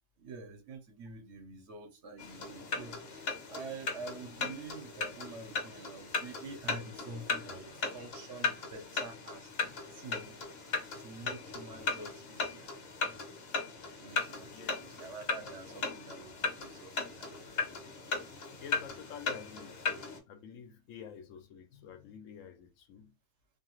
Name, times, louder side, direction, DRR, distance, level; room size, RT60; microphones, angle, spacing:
voice 1, 0.2-10.7 11.0-12.7 14.0-17.3, right 3 dB, 65° right, 1.0 m, -47 dB
sound 1, 2.2-20.2, left 4 dB, 55° left, 0.9 m, -37 dB
voice 2, 18.6-23.1, left 7 dB, 80° left, 1.0 m, -49 dB
2.4 x 2.4 x 3.0 m
omnidirectional pair, 1.4 m